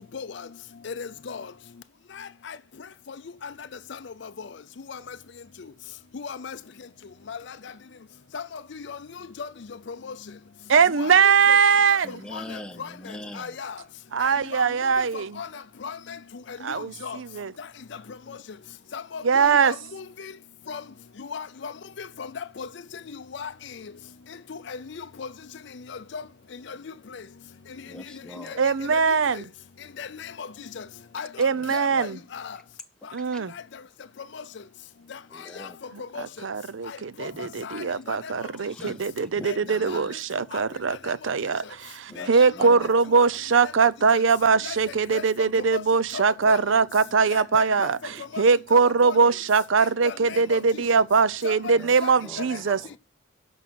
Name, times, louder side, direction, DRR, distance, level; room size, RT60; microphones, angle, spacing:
voice 1, 0.8-1.5 2.2-2.6 4.9-5.2 6.1-6.6 7.3-7.4 8.3-8.6 8.9-9.0 9.4-9.5 10.0-10.1 11.0-11.3 12.3-12.9 13.4-13.8 14.2-14.6 15.1-15.5 15.8-16.2 16.5-17.2 18.3-18.4 18.9-19.2 19.6-20.3 20.7-20.8 21.2-21.7 22.0-22.7 23.3-23.5 24.5-25.3 26.1-26.2 26.7-26.8 28.4-28.6 28.9-29.0 30.0-30.5 30.8-30.9 31.1-31.3 31.7-32.6 34.3-34.4 35.1-35.2 35.6-35.7 36.1-36.2 36.9-37.3 37.6-38.3 38.8-38.9 39.4-39.6 39.9-40.0 40.5-40.6 42.2-42.3 42.6-42.7 44.6-44.8 45.1-45.2 45.7-45.8 46.5-46.6 47.3-47.4 47.8-47.9 48.7-48.8 49.0-49.2 50.0-50.6 51.4-51.5 52.0-52.1, left 6 dB, 55° left, 0.5 m, -36 dB
voice 2, 10.7-12.1 14.1-15.4 16.6-17.5 19.2-19.7 28.6-29.4 31.4-32.2 33.1-33.5 36.2-52.8, right 5 dB, 70° right, 0.6 m, -22 dB
voice 3, 12.0-13.6 27.9-28.7 31.5-32.1 33.3-33.4 35.3-35.8 37.4-37.5 38.7-40.1 42.1-43.1 50.3-50.5 51.6-53.0, left 1 dB, 5° left, 0.6 m, -43 dB
11.5 x 5.4 x 6.2 m
head